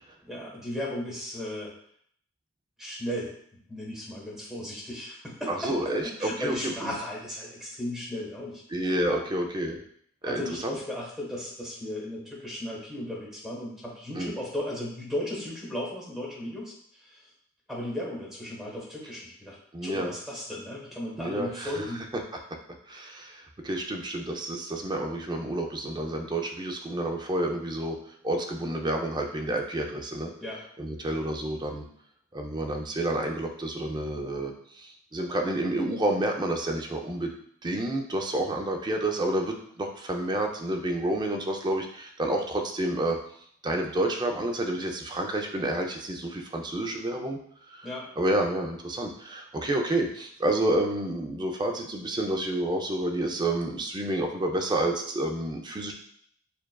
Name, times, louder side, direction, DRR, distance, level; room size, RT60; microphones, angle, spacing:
voice 1, 0.2-1.7 2.8-3.3 3.7-5.9 6.2-8.6 9.1-9.2 10.2-16.7 17.0-17.2 17.7-19.6 19.8-22.0 30.4-30.6 47.8-48.1, left 1 dB, ahead, -4 dB, 1.2 m, -35 dB
voice 2, 5.5-6.9 8.7-9.8 10.2-10.7 14.2-14.3 19.7-20.1 21.2-21.7 22.9-28.0 28.2-30.3 30.8-31.8 32.3-37.3 37.6-43.2 43.6-47.4 47.7-47.9 48.2-55.9, right 1 dB, 20° right, 2 dB, 0.5 m, -29 dB
6.9 x 2.4 x 2.2 m, 0.65 s
head